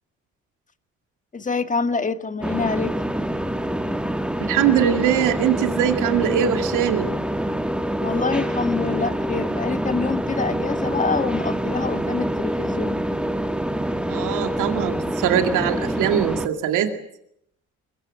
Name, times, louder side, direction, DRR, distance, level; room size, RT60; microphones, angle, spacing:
voice 1, 1.3-2.9 8.0-13.0, left 4 dB, 25° left, 10 dB, 1.8 m, -26 dB
sound 1, 2.4-16.5, right 1 dB, 5° right, 1.5 m, -26 dB
voice 2, 4.4-7.1 14.1-16.9, right 9 dB, 90° right, 6 dB, 2.4 m, -22 dB
23.0 x 23.0 x 7.6 m, 0.73 s
cardioid pair, 90°, 30 cm